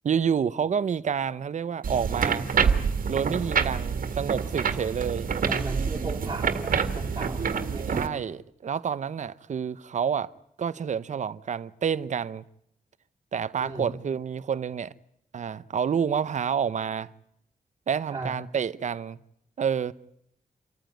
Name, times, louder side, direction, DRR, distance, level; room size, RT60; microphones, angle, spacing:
voice 1, 0.0-2.5 3.1-5.3 7.9-10.3 10.6-12.4 13.3-14.9 15.3-17.1 17.9-19.2 19.6-19.9, right 7 dB, 55° right, 0.8 m, -28 dB
sound 1, 1.8-8.1, right 6 dB, 70° right, 2.0 m, -27 dB
voice 2, 5.4-8.1 13.6-13.9 18.1-18.3, right 3 dB, 25° right, 3.6 m, -36 dB
27.5 x 14.5 x 9.1 m
wide cardioid pair, 145°, 15 cm